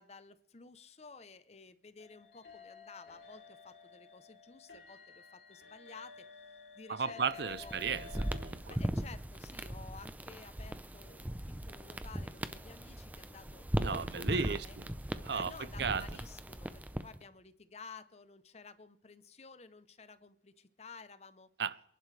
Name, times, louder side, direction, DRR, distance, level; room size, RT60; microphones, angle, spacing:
voice 1, 0.0-6.2 6.7-7.7 8.6-14.8 15.3-21.5, left 4 dB, 35° left, 0.7 m, -53 dB
sound 1, 2.0-8.4, left 5 dB, 85° left, 3.7 m, -52 dB
voice 2, 6.9-8.8 13.8-14.7 15.2-16.1 21.6-21.9, right 5 dB, 70° right, 0.6 m, -35 dB
sound 2, 7.4-17.2, right 1 dB, 10° right, 0.6 m, -39 dB
29.0 x 11.0 x 3.3 m
head